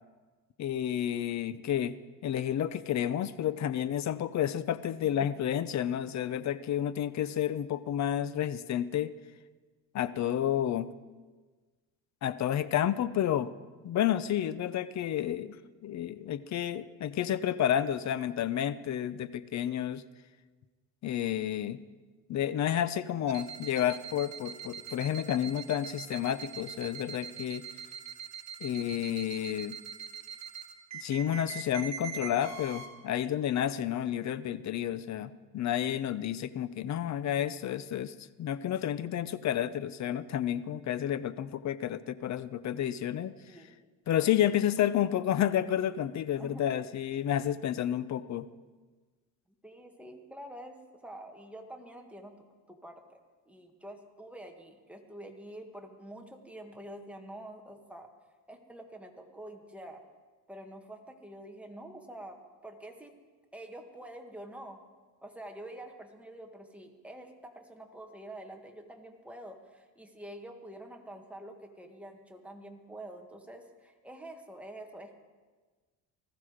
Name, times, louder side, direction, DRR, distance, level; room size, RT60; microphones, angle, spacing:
voice 1, 0.6-2.0 2.2-9.1 9.9-10.9 12.2-13.5 13.8-15.6 15.8-20.0 21.0-21.8 22.3-27.6 28.6-29.8 31.0-43.3 44.1-48.5, left 10 dB, 45° left, 16 dB, 0.7 m, -30 dB
sound 1, 23.3-32.9, right 7 dB, 45° right, 2.2 m, -43 dB
voice 2, 49.6-53.2 53.5-58.1 58.5-60.0 60.5-63.1 63.5-64.8 65.2-75.2, right 1 dB, 5° right, 2 dB, 1.6 m, -47 dB
19.5 x 14.5 x 5.0 m, 1.4 s
cardioid pair, 125°, 39 cm